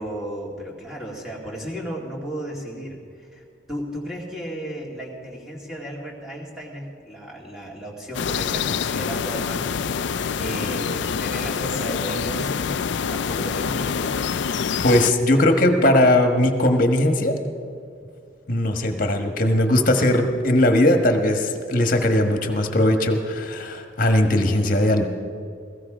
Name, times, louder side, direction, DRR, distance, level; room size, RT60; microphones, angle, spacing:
voice 1, 0.0-9.9 10.4-14.2, right 1 dB, 5° right, -4 dB, 2.4 m, -34 dB
sound 1, 8.1-15.1, left 6 dB, 70° left, 0.4 m, -26 dB
voice 2, 14.8-17.4 18.5-25.0, left 1 dB, 45° left, 5 dB, 1.4 m, -19 dB
16.5 x 16.0 x 5.0 m, 2.3 s
head